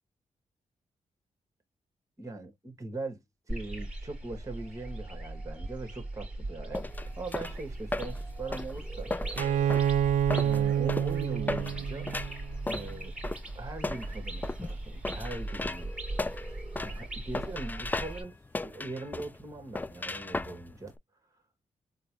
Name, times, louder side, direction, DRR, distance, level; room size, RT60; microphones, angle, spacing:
voice 1, 2.2-3.2 3.5-6.8 7.2-9.1 10.4-12.1 12.6-13.1 13.5-15.9 16.8-18.3 18.6-20.9, right 2 dB, 25° right, 1.7 m, -40 dB
sound 1, 3.5-18.2, right 2 dB, 5° right, 2.1 m, -39 dB
sound 2, 6.7-21.0, left 2 dB, 15° left, 0.3 m, -37 dB
Bowed string instrument, 9.4-13.0, right 10 dB, 85° right, 0.5 m, -28 dB
3.9 x 2.3 x 3.0 m
cardioid pair, 85°, 13 cm